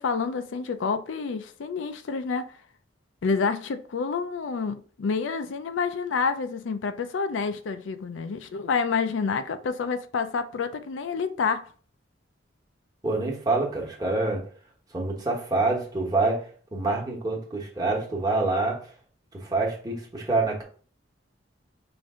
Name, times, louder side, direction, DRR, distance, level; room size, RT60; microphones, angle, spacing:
voice 1, 0.0-2.5 3.2-11.7, left 5 dB, 80° left, 0.4 m, -28 dB
voice 2, 13.0-14.5 14.9-18.9 19.3-20.6, right 3 dB, 20° right, 1.1 m, -26 dB
5.0 x 2.6 x 3.6 m
head